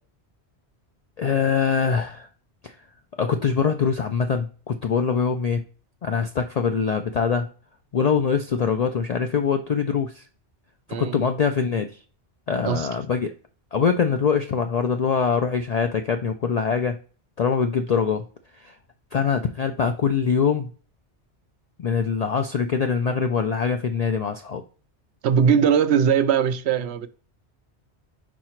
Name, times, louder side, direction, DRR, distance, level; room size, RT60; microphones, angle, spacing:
voice 1, 1.2-2.3 2.6-2.8 3.2-5.6 6.0-7.5 7.9-10.2 11.0-11.9 12.5-13.3 13.7-17.0 17.4-18.2 18.6-18.7 19.1-20.7 21.8-24.6, left 6 dB, 60° left, 0.4 m, -23 dB
voice 2, 25.2-27.1, right 7 dB, 70° right, 0.9 m, -20 dB
4.8 x 4.4 x 4.4 m
omnidirectional pair, 1.2 m